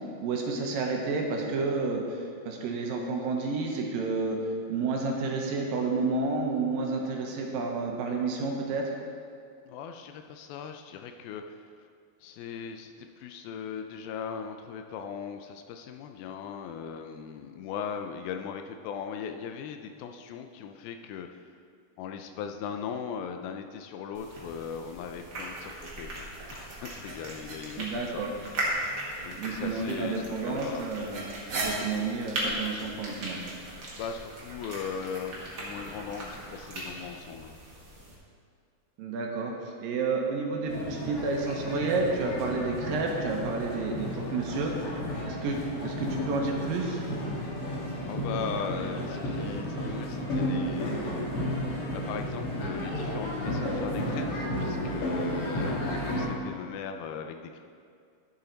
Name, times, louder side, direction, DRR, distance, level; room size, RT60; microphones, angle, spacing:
voice 1, 0.2-4.4 4.7-8.8 27.8-28.3 29.3-31.2 31.5-33.4 39.0-44.7 45.2-45.6 45.8-47.0, right 3 dB, 75° right, 0 dB, 2.6 m, -30 dB
voice 2, 9.7-11.7 12.2-21.4 22.0-26.1 26.5-27.9 28.1-28.6 29.2-30.9 34.0-37.6 48.1-50.9 51.9-57.6, left 7 dB, 85° left, 6 dB, 2.3 m, -38 dB
sound 1, 24.1-38.1, right 1 dB, 45° right, 1.3 m, -37 dB
sound 2, 40.7-56.3, left 1 dB, 60° left, 1.6 m, -32 dB
11.5 x 7.2 x 3.9 m, 2.3 s
omnidirectional pair, 4.3 m